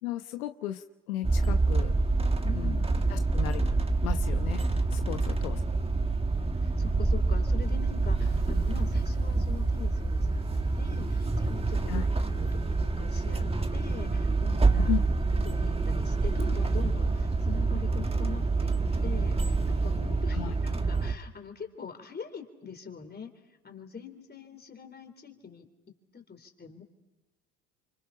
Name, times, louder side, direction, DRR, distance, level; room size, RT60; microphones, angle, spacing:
voice 1, 0.0-1.9 2.5-2.8 3.1-3.7 4.0-4.6 4.9-5.6 11.9-12.0 14.9-15.0 20.3-20.5, left 13 dB, 85° left, 9 dB, 1.1 m, -35 dB
sound 1, 1.2-21.1, right 3 dB, 15° right, 1.6 m, -27 dB
voice 2, 2.4-3.2 5.1-6.2 6.6-13.5 13.7-15.0 15.4-26.8, left 6 dB, 25° left, 7 dB, 3.8 m, -44 dB
sound 2, 8.2-13.1, right 4 dB, 50° right, 5.4 m, -50 dB
29.5 x 25.0 x 5.8 m, 1.1 s
hypercardioid pair, 80°, 42 cm